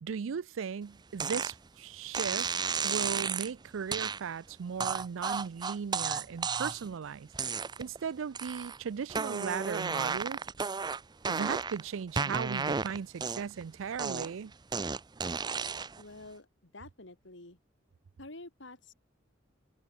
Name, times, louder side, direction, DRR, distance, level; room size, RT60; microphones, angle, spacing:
voice 1, 0.0-2.5 2.8-7.3 7.8-10.4 11.3-14.5, right 6 dB, 85° right, 0.4 m, -37 dB
sound 1, 1.2-1.5 2.1-3.5 3.9-4.2 4.8-6.9 7.3-8.0 8.3-8.8 9.1-11.8 12.2-13.6 14.0-16.0, right 5 dB, 20° right, 0.5 m, -33 dB
voice 2, 16.0-17.6 18.2-18.9, left 2 dB, 70° left, 3.5 m, -49 dB
head